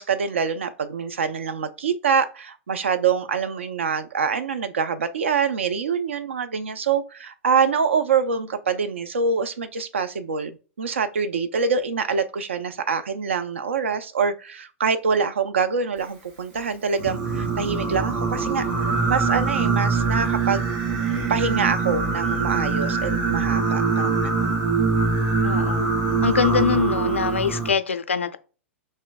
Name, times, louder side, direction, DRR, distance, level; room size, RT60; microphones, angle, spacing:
voice 1, 0.0-20.7 21.3-24.6, right 5 dB, 70° right, 0.5 m, -25 dB
Singing, 17.0-27.7, right 4 dB, 40° right, 1.8 m, -23 dB
voice 2, 25.4-25.9 26.2-28.4, left 6 dB, 75° left, 0.4 m, -23 dB
3.1 x 2.6 x 3.8 m
figure-of-eight pair, 100°, 7 cm